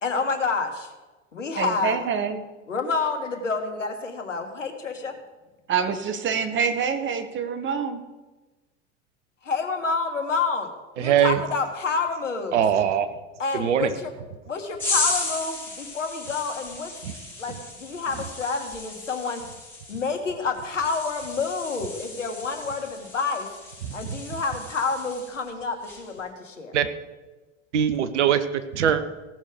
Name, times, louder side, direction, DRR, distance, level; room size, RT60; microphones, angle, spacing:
voice 1, 0.0-0.9 1.3-2.1 2.7-5.1 9.4-10.7 11.0-12.6 13.4-14.1 14.5-16.9 17.4-19.4 19.9-23.5 23.9-26.7, left 4 dB, 85° left, 5 dB, 1.6 m, -28 dB
voice 2, 1.6-2.4 5.7-8.0, right 6 dB, 30° right, 9 dB, 1.3 m, -26 dB
voice 3, 11.0-11.4 12.5-13.1 13.5-13.9 17.0-17.1 23.8-24.2 26.7-26.9 27.7-29.0, right 9 dB, 70° right, 11 dB, 1.0 m, -22 dB
sound 1, 14.8-25.5 25.8-26.2, left 2 dB, 5° left, 4.4 m, -34 dB
17.0 x 6.5 x 5.1 m, 1.2 s
figure-of-eight pair, 80°, 37 cm